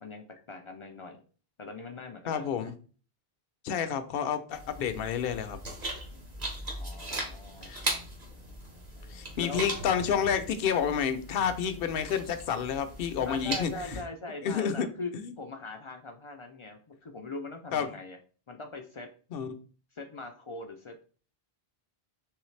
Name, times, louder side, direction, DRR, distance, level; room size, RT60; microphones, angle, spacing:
voice 1, 0.0-1.2 1.6-2.7 6.7-7.7 9.4-9.6 10.1-10.2 13.3-15.1 15.4-18.2 18.5-19.1 19.9-21.0, left 3 dB, 50° left, 4 dB, 0.3 m, -41 dB
voice 2, 2.3-2.7 3.6-5.6 7.7-7.8 9.1-13.7 14.4-14.9 15.1-15.3 17.7-17.9 19.3-19.5, left 7 dB, 70° left, 10 dB, 0.7 m, -29 dB
sound 1, 4.5-14.0, right 1 dB, 45° right, 1.1 m, -39 dB
3.7 x 3.2 x 3.2 m, 0.40 s
omnidirectional pair, 1.0 m